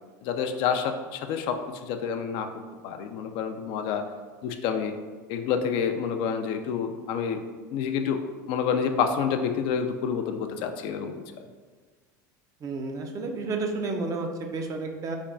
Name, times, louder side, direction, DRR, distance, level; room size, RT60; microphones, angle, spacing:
voice 1, 0.2-2.5 2.8-4.0 4.4-4.9 5.3-7.4 7.7-8.2 8.5-11.2, left 7 dB, 60° left, 6 dB, 0.4 m, -28 dB
voice 2, 12.6-15.2, right 3 dB, 35° right, 4 dB, 0.5 m, -31 dB
3.3 x 2.2 x 3.8 m, 1.4 s
supercardioid pair, 100°, 10 cm